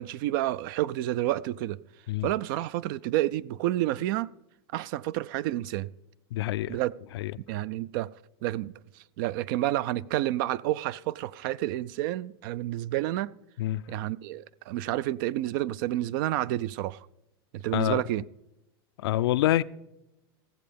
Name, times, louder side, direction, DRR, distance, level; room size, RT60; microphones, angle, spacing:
voice 1, 0.0-1.8 2.2-4.3 4.7-5.9 6.7-6.9 7.5-8.1 8.4-8.7 9.2-13.3 13.9-17.0 17.6-18.2, right 15 dB, 60° right, 0.4 m, -29 dB
voice 2, 6.3-6.8 7.1-7.3 13.6-13.8 17.7-18.0 19.0-19.6, left 14 dB, 80° left, 0.4 m, -26 dB
15.0 x 7.6 x 5.2 m
supercardioid pair, 135°, 13 cm